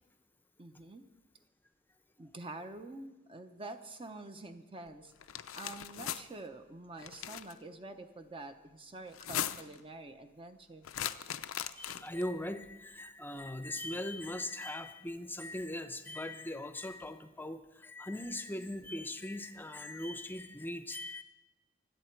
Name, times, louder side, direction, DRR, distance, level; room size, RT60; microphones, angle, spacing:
voice 1, 0.6-1.0 2.2-5.1 5.5-10.9, right 2 dB, 25° right, 7 dB, 0.7 m, -47 dB
sound 1, 5.2-6.2 7.0-7.5 9.1-9.8 10.8-12.2, left 10 dB, 90° left, 0.6 m, -38 dB
voice 2, 11.7-21.2, left 1 dB, 10° left, 9 dB, 0.7 m, -40 dB
25.0 x 8.4 x 4.5 m, 1.1 s
head